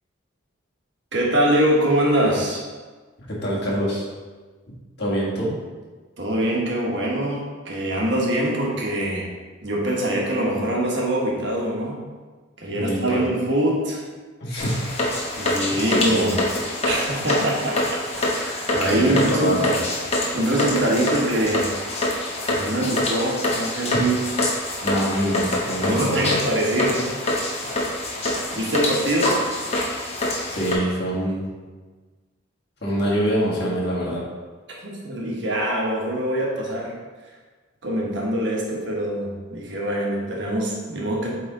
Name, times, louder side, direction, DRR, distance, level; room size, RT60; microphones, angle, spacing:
voice 1, 1.1-2.6 6.2-9.3 9.6-12.0 12.6-14.0 15.4-16.4 16.8-17.8 18.2-19.6 20.3-21.7 22.4-24.2 25.8-27.1 28.2-29.4 34.8-36.9 37.8-41.3, right 1 dB, 60° right, -3 dB, 1.3 m, -23 dB
voice 2, 3.3-4.1 5.0-5.5 12.7-13.2 14.4-15.1 15.7-16.3 18.9-19.8 23.9-24.0 24.8-26.2 30.5-31.4 32.8-34.2, equal, 55° left, -5 dB, 1.7 m, -25 dB
sound 1, 14.6-30.7, left 1 dB, 30° left, 0.9 m, -26 dB
8.1 x 3.5 x 3.8 m, 1.4 s
head